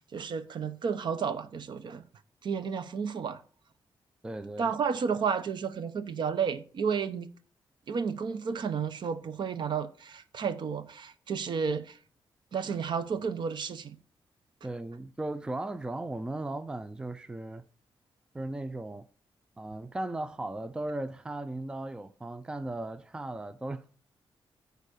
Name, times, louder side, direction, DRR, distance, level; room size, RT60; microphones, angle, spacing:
voice 1, 0.1-2.0 2.4-3.4 4.6-7.3 7.9-12.0 12.5-14.0, right 6 dB, 55° right, 0.8 m, -32 dB
voice 2, 4.2-4.7 14.6-17.6 18.3-19.1 19.6-23.8, right 2 dB, 10° right, 0.4 m, -37 dB
9.8 x 4.0 x 6.5 m
wide cardioid pair, 165°, 9 cm